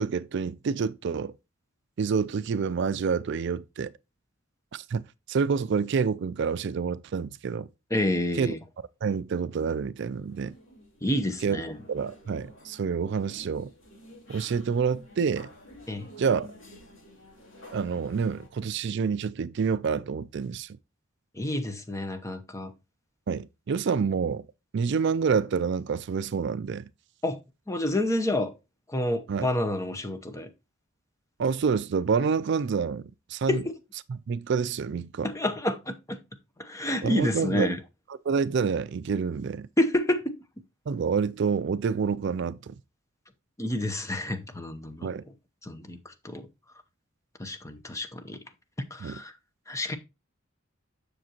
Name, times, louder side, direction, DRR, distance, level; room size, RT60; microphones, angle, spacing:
voice 1, 0.0-1.3 2.0-3.9 4.7-7.7 8.3-8.5 9.0-10.5 11.4-11.6 11.9-13.7 14.3-15.5 16.2-16.5 17.7-20.8 23.3-24.4 24.7-26.9 29.3-29.5 31.4-33.6 34.1-35.3 37.0-37.7 38.2-39.7 40.9-42.7 45.0-45.2 49.0-49.2, right 5 dB, 60° right, 0.4 m, -28 dB
voice 2, 7.9-8.6 11.0-11.7 15.9-16.0 21.4-22.7 27.2-27.4 27.7-28.5 28.9-30.5 33.5-33.7 35.2-36.2 36.6-37.8 39.8-40.3 43.6-45.1 45.6-46.5 47.4-48.4 48.9-49.3 49.7-50.0, left 1 dB, 15° left, 0.9 m, -29 dB
sound 1, 10.1-18.5, equal, 70° left, 3.6 m, -50 dB
7.5 x 6.6 x 2.9 m
head